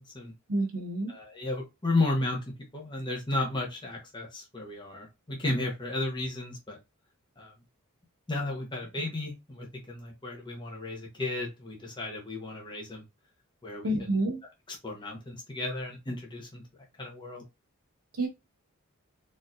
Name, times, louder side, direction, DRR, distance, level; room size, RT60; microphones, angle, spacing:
voice 1, 0.5-1.1 13.8-14.4 18.2-18.3, right 1 dB, 85° right, 0.9 m, -28 dB
voice 2, 1.1-2.4 2.7-6.8 7.4-7.5 8.3-13.0 13.6-13.9 14.7-16.6 17.0-17.4, left 2 dB, 20° left, 0.9 m, -33 dB
4.1 x 2.8 x 2.4 m
head